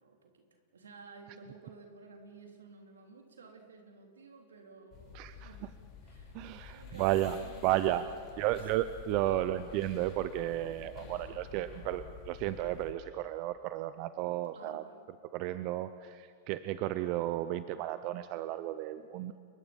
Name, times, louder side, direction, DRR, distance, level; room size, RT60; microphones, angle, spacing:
voice 1, 0.0-5.7 6.0-8.7 9.2-9.6 11.0-11.2 14.5-15.1, right 4 dB, 90° right, 3 dB, 3.5 m, -54 dB
sound 1, 4.9-12.9, left 6 dB, 40° left, 7.6 m, -49 dB
voice 2, 5.1-5.5 6.3-7.4 7.6-8.0 8.4-14.8 15.3-19.3, right 14 dB, 50° right, 12 dB, 0.7 m, -33 dB
29.5 x 23.0 x 5.3 m, 2.3 s
hypercardioid pair, 110°, 0 cm